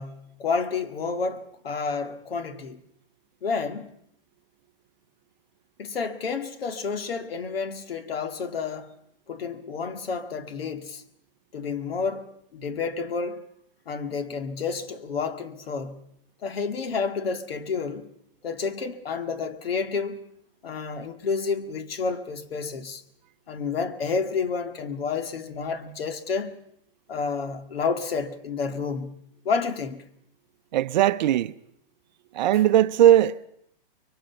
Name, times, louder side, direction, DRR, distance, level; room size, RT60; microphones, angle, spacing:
voice 1, 0.0-2.8 3.4-4.0 5.8-8.9 9.3-11.0 11.5-13.4 13.9-16.0 16.4-18.1 18.4-20.2 20.6-23.0 23.5-26.6 27.1-29.2 29.5-30.0 32.5-32.6, left 5 dB, 85° left, 2.1 m, -30 dB
voice 2, 30.7-31.5 32.3-33.5, right 12 dB, 50° right, 0.8 m, -19 dB
25.0 x 23.0 x 5.8 m
hypercardioid pair, 155°, 29 cm